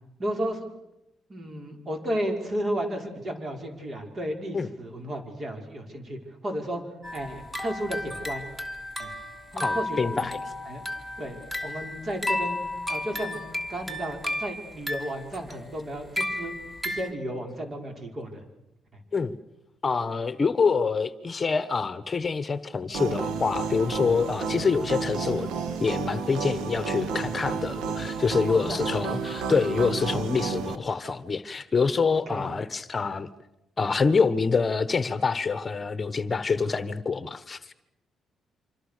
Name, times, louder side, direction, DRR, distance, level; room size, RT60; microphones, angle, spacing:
voice 1, 0.2-0.7 1.3-6.8 7.1-8.5 9.0-9.1 9.5-10.8 11.2-13.4 13.7-16.5 16.8-18.4 18.9-19.0 24.6-24.7 28.5-29.0 29.3-29.4 32.1-32.5, equal, 40° right, 4 dB, 5.4 m, -33 dB
sound 1, 7.0-17.1, left 1 dB, 5° right, 2.9 m, -33 dB
voice 2, 9.5-10.4 19.1-19.4 19.8-25.5 25.8-33.3 33.8-37.7, left 5 dB, 30° left, 13 dB, 1.2 m, -26 dB
sound 2, 22.9-30.8, right 5 dB, 80° right, 1.9 m, -31 dB
27.0 x 26.0 x 6.7 m, 0.88 s
cardioid pair, 90°, 0 cm